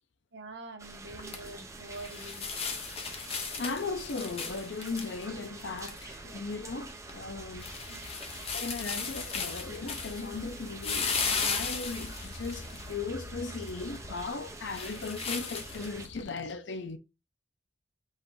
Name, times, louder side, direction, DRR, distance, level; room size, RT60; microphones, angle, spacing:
voice 1, 0.3-2.5 7.9-8.0, right 2 dB, 65° right, 1.2 m, -45 dB
sound 1, 0.8-16.1, right 3 dB, 15° right, 0.5 m, -47 dB
sound 2, 1.1-16.2, left 5 dB, 30° left, 0.7 m, -37 dB
voice 2, 3.6-7.7 8.5-17.0, left 4 dB, 70° left, 0.6 m, -37 dB
5.5 x 2.6 x 3.1 m
head